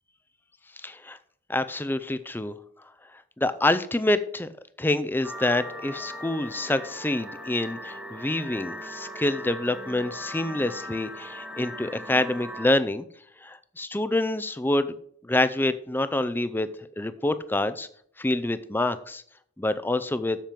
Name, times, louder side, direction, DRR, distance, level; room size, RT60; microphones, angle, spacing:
voice 1, 0.8-1.2 1.5-2.5 3.4-4.5 4.8-13.1 13.4-15.0 15.2-17.9 18.2-19.2 19.6-20.4, left 1 dB, 10° left, 12 dB, 0.5 m, -27 dB
sound 1, 5.2-12.7, equal, 5° right, 0.9 m, -39 dB
7.4 x 7.2 x 5.2 m, 0.62 s
head